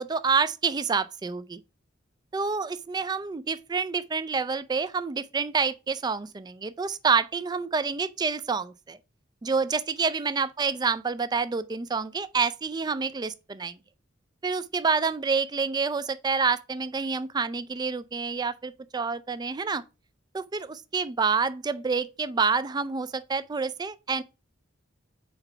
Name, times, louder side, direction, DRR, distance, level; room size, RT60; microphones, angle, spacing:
voice 1, 0.0-1.6 2.3-9.0 9.4-13.7 14.4-19.8 20.3-24.2, right 5 dB, 20° right, 0.3 m, -28 dB
4.4 x 4.0 x 5.5 m
head